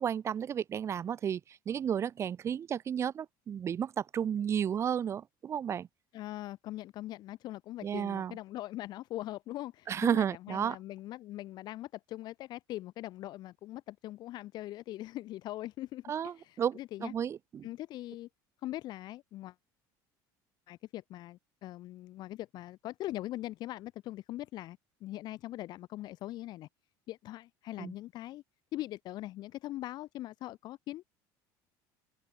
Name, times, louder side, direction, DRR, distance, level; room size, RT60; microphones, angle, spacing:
voice 1, 0.0-1.4 1.6-5.9 7.8-8.3 9.9-10.8 16.1-17.6 27.8-27.9, right 8 dB, 35° right, 1.5 m, -32 dB
voice 2, 6.1-17.1 17.6-18.3 18.6-19.5 20.7-26.7 27.1-28.4 28.7-31.1, left 15 dB, 55° left, 7.8 m, -41 dB
open air
cardioid pair, 135°, 9 cm